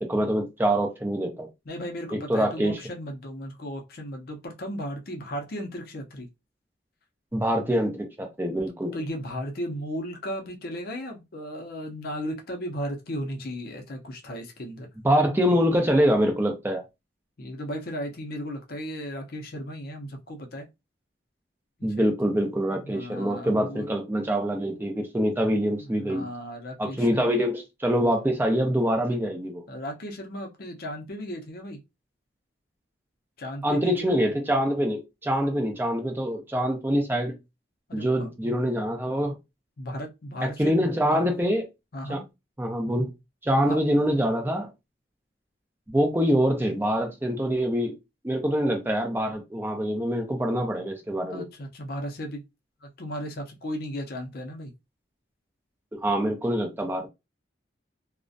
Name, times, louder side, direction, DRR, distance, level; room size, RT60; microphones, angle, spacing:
voice 1, 0.0-1.5 2.1-2.8 7.3-8.9 15.0-16.8 21.8-26.3 26.8-29.6 33.6-37.3 37.9-39.4 40.4-41.6 42.1-42.2 42.6-43.1 43.4-44.7 45.9-47.9 48.2-51.5 55.9-57.1, equal, 10° right, 0.5 m, -25 dB
voice 2, 1.7-6.3 8.9-14.9 17.4-20.7 21.8-22.1 22.8-23.9 25.8-27.5 29.7-31.8 33.4-34.2 37.9-38.6 39.8-40.7 41.1-41.3 41.9-42.2 43.5-43.8 51.3-52.4 52.8-54.7, equal, 55° left, 0.5 m, -35 dB
2.4 x 2.1 x 2.5 m
head